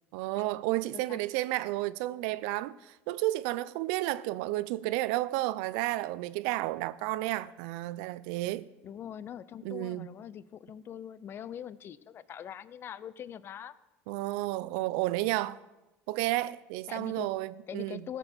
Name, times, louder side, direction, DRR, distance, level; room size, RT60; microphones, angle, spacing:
voice 1, 0.1-8.7 9.6-10.1 14.1-15.6 16.1-18.1, right 17 dB, 75° right, 0.5 m, -32 dB
voice 2, 8.8-13.7 16.9-17.3 17.7-18.2, left 9 dB, 40° left, 0.6 m, -42 dB
16.0 x 7.0 x 6.1 m
supercardioid pair, 105°, 6 cm